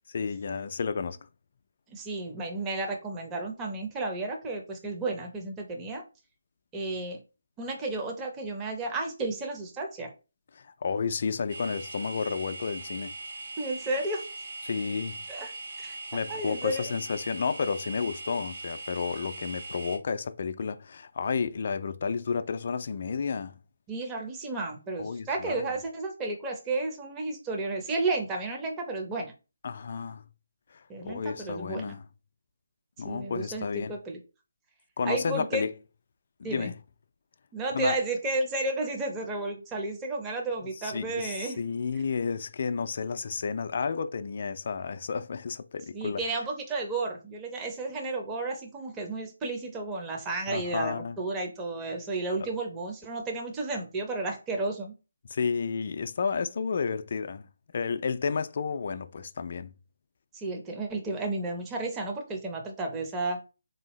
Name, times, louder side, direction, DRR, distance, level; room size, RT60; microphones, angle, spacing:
voice 1, 0.1-1.3 10.5-13.1 14.6-15.2 16.1-23.5 25.0-25.7 29.6-30.2 30.7-32.0 33.0-34.0 35.0-35.7 36.4-36.7 37.7-38.0 40.8-46.2 50.5-51.2 52.4-52.5 55.3-57.5 57.7-59.7, left 5 dB, 50° left, 0.3 m, -31 dB
voice 2, 1.9-6.0 6.7-7.2 7.6-10.1 13.6-14.2 15.3-16.0 16.3-16.9 23.9-29.3 30.9-31.9 33.0-34.2 35.0-35.6 36.4-36.7 37.5-41.6 45.9-54.9 60.3-63.4, right 2 dB, 15° right, 0.7 m, -32 dB
sound 1, 11.5-20.0, right 2 dB, 50° right, 1.0 m, -40 dB
3.7 x 2.7 x 3.0 m
figure-of-eight pair, 155°, 0 cm